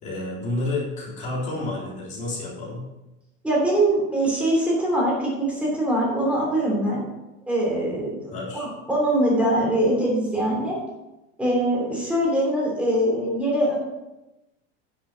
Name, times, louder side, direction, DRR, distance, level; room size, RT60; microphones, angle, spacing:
voice 1, 0.0-2.9 7.8-7.9 8.3-8.6, left 2 dB, 20° left, -5 dB, 3.6 m, -30 dB
voice 2, 3.4-7.0 7.5-10.8 11.4-13.7, right 1 dB, 5° right, -4 dB, 3.1 m, -23 dB
10.0 x 7.0 x 6.3 m, 0.97 s
supercardioid pair, 180°, 36 cm